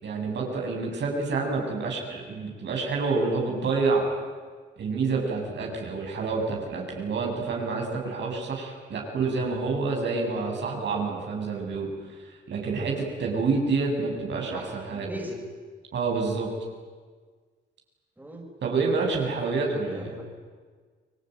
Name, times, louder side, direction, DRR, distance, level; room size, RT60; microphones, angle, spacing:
voice 1, 0.0-4.1 4.8-15.1 15.9-16.5 18.6-20.1, right 4 dB, 60° right, 0 dB, 7.7 m, -28 dB
voice 2, 14.5-15.4 18.2-18.4 19.9-20.2, equal, 10° right, 0 dB, 6.7 m, -39 dB
30.0 x 21.5 x 9.3 m, 1.5 s
cardioid pair, 90°, 20 cm